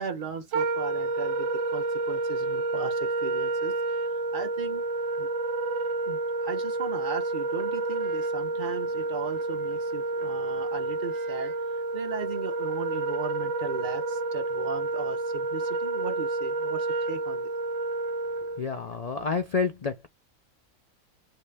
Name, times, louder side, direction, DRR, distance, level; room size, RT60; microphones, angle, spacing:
voice 1, 0.0-4.8 5.2-5.3 6.1-17.5, right 5 dB, 40° right, 0.9 m, -37 dB
Wind instrument woodwind instrument, 0.5-18.6, right 2 dB, 70° right, 0.9 m, -29 dB
voice 2, 18.6-20.1, left 5 dB, 75° left, 0.3 m, -29 dB
3.0 x 2.8 x 3.3 m
omnidirectional pair, 1.5 m